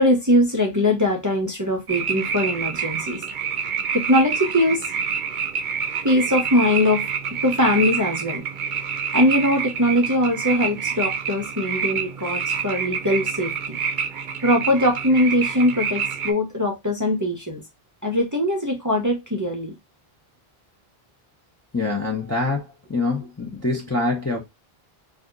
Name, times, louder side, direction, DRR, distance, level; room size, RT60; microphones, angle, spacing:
voice 1, 0.0-3.2 3.9-4.9 6.0-7.1 7.4-8.4 9.1-13.8 14.4-17.6 18.0-19.7, left 1 dB, 20° right, 0.7 m, -21 dB
sound 1, 1.9-16.3, right 6 dB, 60° right, 0.6 m, -27 dB
voice 2, 21.7-24.4, left 3 dB, 20° left, 0.6 m, -25 dB
2.7 x 2.5 x 3.6 m
omnidirectional pair, 1.0 m